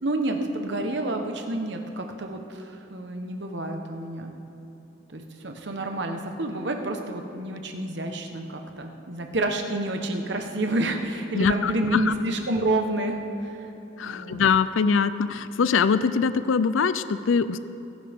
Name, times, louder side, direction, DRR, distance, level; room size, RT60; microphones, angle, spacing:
voice 1, 0.0-4.3 5.1-13.2 13.4-13.5 14.0-14.4, right 2 dB, 60° right, 4 dB, 1.2 m, -29 dB
voice 2, 11.3-12.1 14.0-17.6, left 5 dB, 80° left, 14 dB, 0.4 m, -23 dB
23.0 x 10.5 x 3.7 m, 3.0 s
head